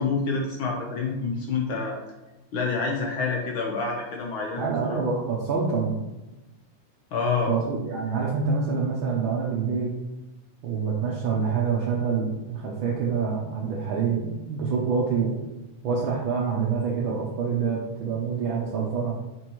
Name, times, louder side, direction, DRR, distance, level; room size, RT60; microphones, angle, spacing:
voice 1, 0.0-2.0 2.5-5.0 7.1-7.5, left 4 dB, 80° left, 0 dB, 1.1 m, -27 dB
voice 2, 4.6-6.0 7.5-9.9 10.6-15.4 15.8-19.2, right 5 dB, 90° right, -3 dB, 1.1 m, -26 dB
6.2 x 5.8 x 3.0 m, 1.0 s
omnidirectional pair, 3.3 m